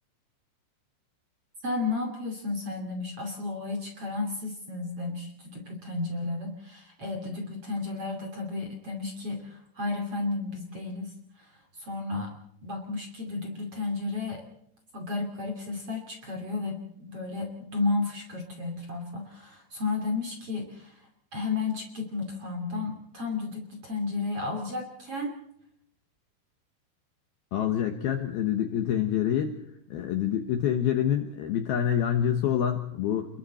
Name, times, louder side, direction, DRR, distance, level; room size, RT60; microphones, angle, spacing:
voice 1, 1.6-12.3 12.6-14.4 14.9-25.4, left 3 dB, 40° right, 2 dB, 2.6 m, -33 dB
voice 2, 27.5-29.6 29.9-33.4, left 9 dB, 70° left, 6 dB, 2.5 m, -27 dB
29.0 x 21.5 x 4.3 m, 0.74 s
omnidirectional pair, 5.7 m